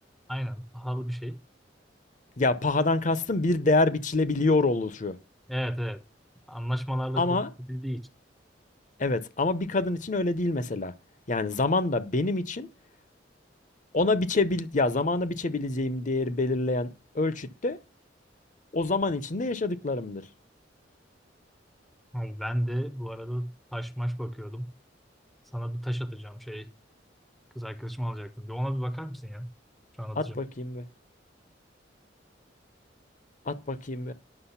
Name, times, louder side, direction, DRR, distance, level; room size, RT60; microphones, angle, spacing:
voice 1, 0.3-1.4 5.5-6.0 6.5-7.4 7.7-8.0 22.1-24.7 25.5-26.7 27.5-29.5 30.0-30.4, equal, ahead, 0.6 m, -33 dB
voice 2, 2.4-5.2 7.2-7.5 9.0-10.9 11.3-12.7 13.9-17.8 18.7-20.2 30.1-30.9 33.5-34.1, left 2 dB, 45° left, 0.8 m, -26 dB
10.0 x 6.3 x 5.7 m
head